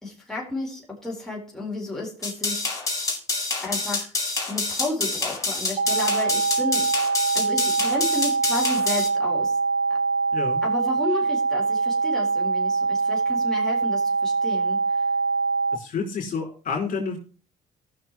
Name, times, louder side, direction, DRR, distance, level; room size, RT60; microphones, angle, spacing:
voice 1, 0.0-2.7 3.6-4.2 4.5-6.9 7.3-9.6 10.6-15.1, left 2 dB, 5° left, -4 dB, 4.1 m, -32 dB
sound 1, 2.2-9.1, left 3 dB, 20° left, 4.7 m, -27 dB
sound 2, 5.8-15.8, right 4 dB, 50° right, 0.9 m, -24 dB
voice 2, 10.3-10.6 15.7-17.2, left 5 dB, 50° left, 0 dB, 4.4 m, -29 dB
19.0 x 6.5 x 3.0 m, 0.37 s
cardioid pair, 110°, 17 cm